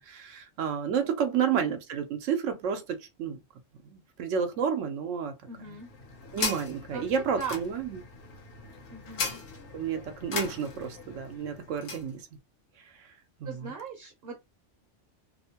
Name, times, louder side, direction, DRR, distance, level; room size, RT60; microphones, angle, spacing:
voice 1, 0.0-3.4 3.8-5.3 6.3-8.0 9.7-12.3 12.8-13.1 13.4-13.7, right 7 dB, 85° right, 1.0 m, -31 dB
sound 1, 5.5-12.1, left 4 dB, 60° left, 0.8 m, -38 dB
voice 2, 5.5-5.9 6.9-7.1 7.4-7.6 8.9-9.4 13.4-14.4, right 5 dB, 60° right, 0.8 m, -39 dB
2.8 x 2.1 x 2.7 m
omnidirectional pair, 1.2 m